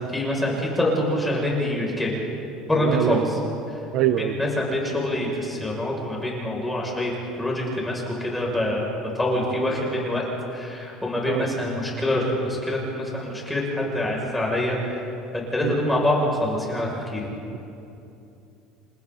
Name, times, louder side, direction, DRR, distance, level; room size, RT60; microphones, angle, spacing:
voice 1, 0.0-2.2 2.7-3.4 3.7-3.8 4.2-7.1 7.4-8.9 9.1-15.0 15.3-17.3, left 1 dB, 10° left, -3 dB, 6.9 m, -25 dB
voice 2, 2.8-3.2 3.9-4.4 11.3-11.5 15.6-15.7, right 12 dB, 60° right, 9 dB, 0.7 m, -24 dB
30.0 x 27.5 x 4.2 m, 2.8 s
cardioid pair, 135°, 0 cm